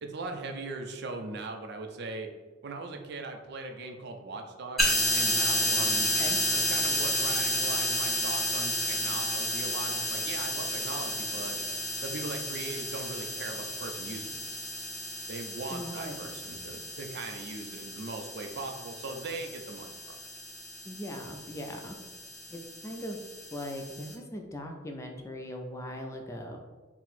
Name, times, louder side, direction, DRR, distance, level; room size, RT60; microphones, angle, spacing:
voice 1, 0.0-2.3 2.6-6.1 6.5-11.6 12.0-14.4 15.3-19.9, right 3 dB, 60° right, 4 dB, 0.5 m, -39 dB
sound 1, 4.8-24.1, left 1 dB, ahead, 0.8 m, -32 dB
voice 2, 15.7-16.3 20.9-22.0 22.5-23.2 23.5-26.6, left 1 dB, 15° left, 3 dB, 0.3 m, -39 dB
4.3 x 2.0 x 4.1 m, 1.3 s
head